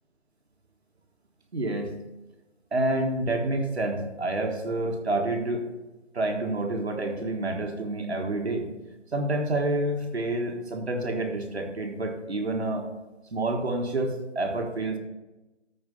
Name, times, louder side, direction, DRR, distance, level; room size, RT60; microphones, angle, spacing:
voice 1, 1.5-1.9 2.7-5.7 6.1-8.7 9.1-12.9 13.3-15.0, right 2 dB, 60° right, 3 dB, 1.5 m, -28 dB
14.0 x 4.7 x 5.5 m, 1.1 s
figure-of-eight pair, 170°, 37 cm